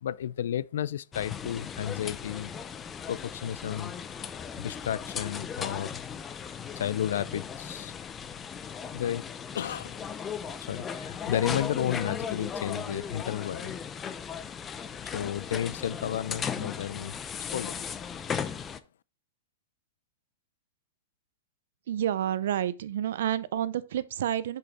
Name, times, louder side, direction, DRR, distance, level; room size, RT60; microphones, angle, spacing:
voice 1, 0.0-2.5 3.1-3.9 4.6-6.0 6.8-7.9 8.9-9.3 9.5-10.0 10.7-13.7 15.1-17.2 17.5-17.8, left 10 dB, 75° left, 0.4 m, -32 dB
sound 1, 1.1-18.8, left 7 dB, 20° left, 0.5 m, -37 dB
voice 2, 21.9-24.6, right 10 dB, 70° right, 0.6 m, -29 dB
6.5 x 5.3 x 4.2 m
hypercardioid pair, 145°, 0 cm